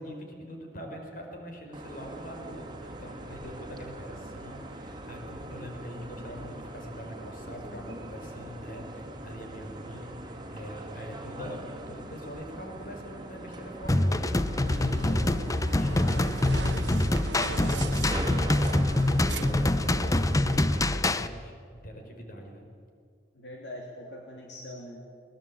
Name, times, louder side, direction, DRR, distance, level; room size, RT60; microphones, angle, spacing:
voice 1, 0.0-22.7, equal, 50° left, 3 dB, 4.8 m, -43 dB
sound 1, 1.7-20.9, right 1 dB, 25° right, 2.6 m, -42 dB
sound 2, 13.9-21.3, left 1 dB, 20° left, 0.7 m, -25 dB
sound 3, 14.6-20.6, right 4 dB, 80° right, 1.0 m, -40 dB
voice 2, 23.3-25.1, left 1 dB, 75° left, -1 dB, 3.1 m, -43 dB
22.0 x 20.5 x 8.6 m, 2.1 s
head